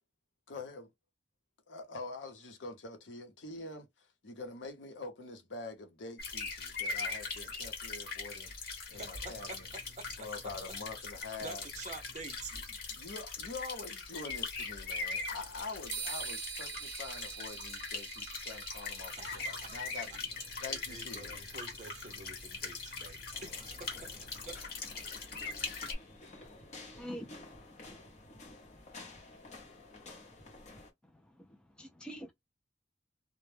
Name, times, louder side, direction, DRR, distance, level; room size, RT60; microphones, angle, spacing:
voice 1, 0.5-0.9 1.7-8.5 8.9-9.6 10.2-11.6 12.9-20.3 20.6-21.4, left 3 dB, 75° left, 0.7 m, -45 dB
sound 1, 6.2-25.9, left 4 dB, 55° left, 1.0 m, -41 dB
voice 2, 8.9-11.0 11.4-12.5 19.1-24.6, right 3 dB, 40° right, 0.6 m, -48 dB
sound 2, 15.9-23.6, right 7 dB, 80° right, 0.7 m, -47 dB
sound 3, 23.3-30.9, left 2 dB, 40° left, 0.8 m, -52 dB
voice 3, 27.0-28.0 31.0-32.3, equal, 5° left, 0.3 m, -47 dB
2.1 x 2.1 x 3.1 m
head